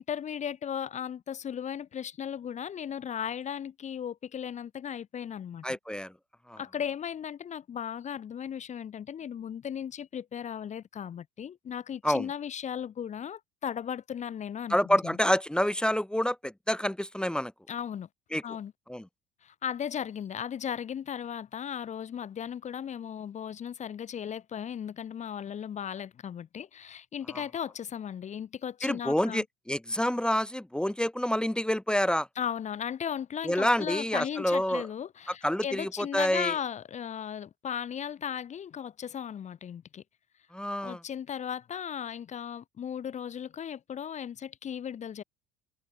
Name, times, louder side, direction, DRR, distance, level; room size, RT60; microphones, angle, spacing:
voice 1, 0.0-5.8 6.6-15.2 17.7-18.1 18.4-18.7 19.4-29.4 32.4-40.0 40.8-45.2, left 8 dB, 35° left, 0.9 m, -36 dB
voice 2, 5.6-6.1 6.5-6.6 12.0-12.3 14.7-17.5 18.3-18.4 18.9-19.0 27.3-27.4 28.8-32.3 33.4-34.8 35.4-36.5 40.5-41.0, equal, 5° left, 1.0 m, -28 dB
hypercardioid pair, 65°, 20 cm